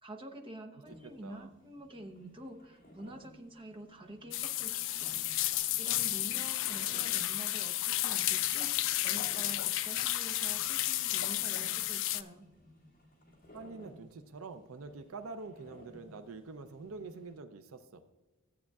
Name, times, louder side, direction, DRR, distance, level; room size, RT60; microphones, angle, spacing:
voice 1, 0.0-5.2 5.8-12.4, right 1 dB, 25° right, 5 dB, 0.7 m, -48 dB
sound 1, 0.8-17.4, equal, 40° left, 2.3 m, -58 dB
voice 2, 1.0-1.5 13.5-18.0, right 3 dB, 70° right, 10 dB, 0.5 m, -46 dB
sound 2, 4.3-12.2, left 14 dB, 65° left, 0.4 m, -32 dB
14.0 x 8.4 x 2.3 m, 1.1 s
head